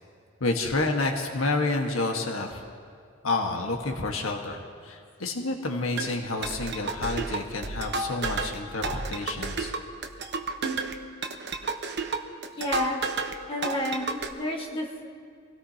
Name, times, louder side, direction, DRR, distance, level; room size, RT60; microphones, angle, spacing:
voice 1, 0.4-2.6 3.2-9.7, left 2 dB, 80° left, 2 dB, 1.5 m, -29 dB
sound 1, 6.0-13.4 13.6-14.3, right 3 dB, 55° right, 1.0 m, -31 dB
voice 2, 12.5-13.0 13.5-15.1, equal, 25° left, -2 dB, 1.6 m, -31 dB
25.5 x 17.5 x 2.9 m, 2.2 s
head